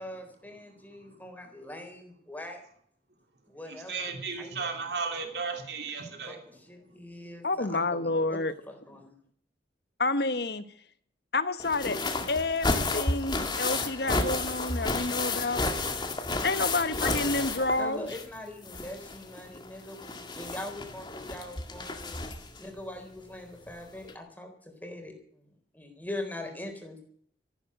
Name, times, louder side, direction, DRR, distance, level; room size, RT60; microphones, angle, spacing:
voice 1, 0.0-2.6 3.5-4.1 4.4-4.5 6.2-8.4 8.7-9.1 17.7-22.2 22.6-25.5 25.7-27.0, left 1 dB, 10° left, 3 dB, 4.0 m, -42 dB
voice 2, 3.9-6.4, right 4 dB, 65° right, 4 dB, 2.9 m, -34 dB
voice 3, 7.4-8.5 10.0-10.6 11.3-12.0 12.3-15.6 16.4-18.1, left 3 dB, 65° left, 12 dB, 1.2 m, -29 dB
sound 1, 11.6-18.4 18.6-22.6 23.7-23.8 24.1-24.2, left 3 dB, 25° left, 2.0 m, -32 dB
14.5 x 11.5 x 7.8 m, 0.62 s
head